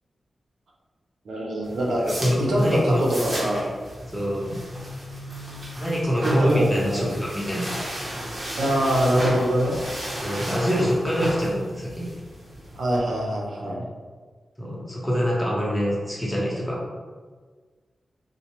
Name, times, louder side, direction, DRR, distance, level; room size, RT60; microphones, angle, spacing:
voice 1, 1.3-2.0 2.5-3.7 6.2-7.2 8.6-9.8 12.7-13.8, right 1 dB, 75° right, -3 dB, 0.7 m, -23 dB
sound 1, 1.6-13.0, equal, 45° right, 1.0 m, -34 dB
voice 2, 2.1-3.0 4.1-4.6 5.8-7.7 10.2-12.1 14.6-16.8, equal, 5° left, -5 dB, 1.0 m, -25 dB
4.2 x 2.2 x 3.0 m, 1.5 s
cardioid pair, 70°, 0 cm